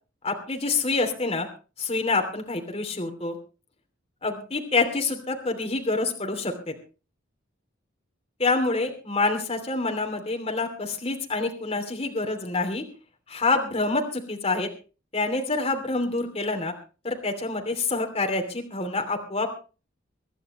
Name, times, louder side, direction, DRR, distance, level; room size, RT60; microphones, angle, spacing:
voice 1, 0.2-1.5 1.8-3.4 4.2-6.7 8.4-12.8 13.3-14.7 15.1-16.7 17.0-19.5, left 3 dB, 30° left, 3 dB, 2.9 m, -27 dB
24.5 x 11.5 x 3.2 m, 0.35 s
head